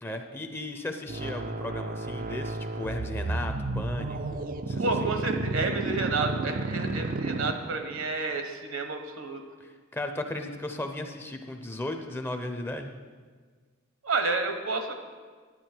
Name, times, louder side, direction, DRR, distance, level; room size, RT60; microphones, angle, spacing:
voice 1, 0.0-4.4 4.7-5.1 9.6-12.9, left 1 dB, 10° left, 5 dB, 0.6 m, -36 dB
sound 1, 1.1-8.0, right 3 dB, 45° right, 0.5 m, -32 dB
voice 2, 4.8-9.4 14.0-14.9, right 3 dB, 70° right, 6 dB, 1.1 m, -30 dB
11.0 x 8.3 x 4.4 m, 1.5 s
head